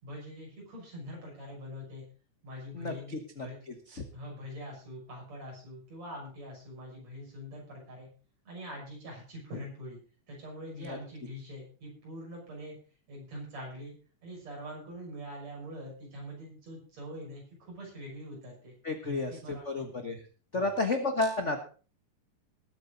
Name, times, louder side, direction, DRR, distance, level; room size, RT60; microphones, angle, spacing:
voice 1, 0.0-2.0 2.4-3.6 4.1-8.1 8.5-10.0 10.3-12.8 13.1-13.9 14.2-18.7 19.0-19.8 20.5-20.8, equal, 55° right, -2 dB, 7.6 m, -44 dB
voice 2, 2.7-4.0 10.7-11.0 18.8-20.2 20.5-21.6, left 2 dB, 65° left, 5 dB, 0.7 m, -32 dB
20.0 x 8.8 x 4.0 m, 0.38 s
omnidirectional pair, 3.6 m